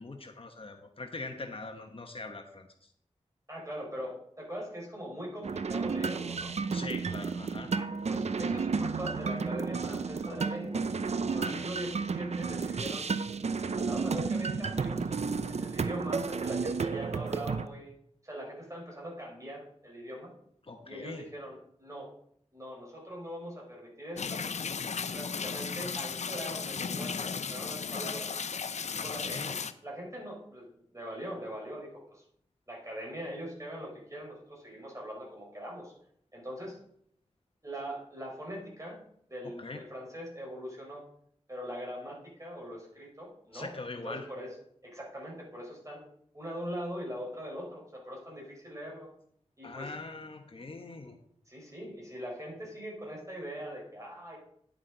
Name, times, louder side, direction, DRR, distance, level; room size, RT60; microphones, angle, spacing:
voice 1, 0.0-2.7 6.7-7.7 11.3-11.7 20.7-21.3 28.9-29.6 39.4-39.8 43.5-44.3 49.6-51.2, left 3 dB, 50° left, 5 dB, 1.0 m, -42 dB
voice 2, 3.5-6.5 7.7-10.8 11.3-13.1 13.6-17.9 18.2-20.3 20.8-22.1 22.5-24.5 25.0-28.3 28.9-32.2 32.7-35.9 36.3-36.8 37.6-38.9 39.3-41.0 41.5-43.7 44.0-44.5 44.8-46.0 46.3-49.1 49.6-49.9 51.5-54.4, equal, 25° right, -2 dB, 4.5 m, -41 dB
sound 1, 5.4-17.7, right 5 dB, 65° right, 0.5 m, -32 dB
sound 2, 24.2-29.7, left 5 dB, 75° left, 0.5 m, -35 dB
10.0 x 8.6 x 3.9 m, 0.68 s
wide cardioid pair, 65°, 12 cm